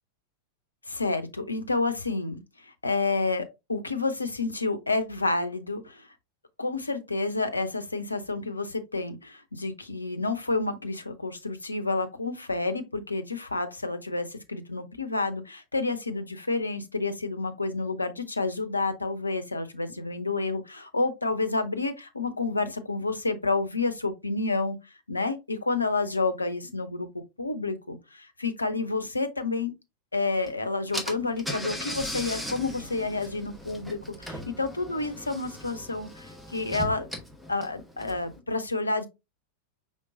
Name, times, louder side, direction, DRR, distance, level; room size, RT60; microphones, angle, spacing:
voice 1, 0.9-6.1 6.6-24.8 25.1-29.7 30.1-37.1 37.5-39.1, left 3 dB, 80° left, 0.6 m, -29 dB
Car / Engine, 30.5-30.6 30.9-38.4, equal, ahead, 1.0 m, -38 dB
5.1 x 3.7 x 2.5 m
figure-of-eight pair, 90°, 0 cm